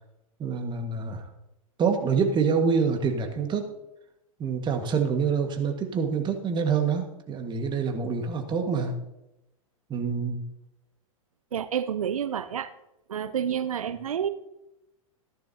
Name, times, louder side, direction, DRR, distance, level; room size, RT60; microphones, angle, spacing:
voice 1, 0.4-1.2 1.8-3.7 4.4-8.9 9.9-10.4, right 5 dB, 25° right, 4 dB, 1.7 m, -26 dB
voice 2, 11.5-12.7 13.1-14.3, right 8 dB, 85° right, 13 dB, 0.5 m, -29 dB
14.0 x 11.5 x 2.8 m, 0.89 s
hypercardioid pair, 105°, 17 cm